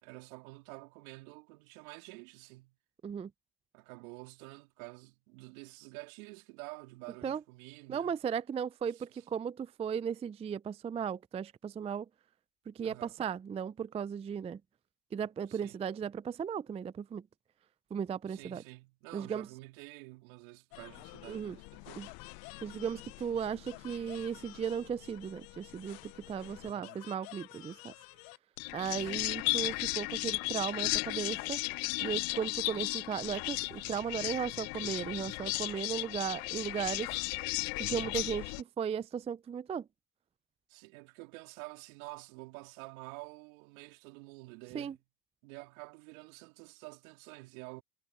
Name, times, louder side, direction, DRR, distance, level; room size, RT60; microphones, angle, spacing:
voice 1, 0.0-2.8 3.7-8.2 9.0-9.2 12.8-13.1 15.5-15.8 18.3-22.1 26.6-27.0 29.0-29.3 40.7-45.0 45.4-47.8, right 27 dB, 75° right, 3.5 m, -49 dB
voice 2, 7.9-12.1 12.7-14.6 15.1-17.3 17.9-18.6 19.1-19.5 21.3-21.6 22.0-22.1 22.6-27.9 28.7-31.6 32.0-37.1 37.8-39.9 44.7-45.0, right 7 dB, 15° right, 0.4 m, -36 dB
sound 1, 20.7-38.6, left 26 dB, 55° left, 0.6 m, -37 dB
hypercardioid pair, 85°, 42 cm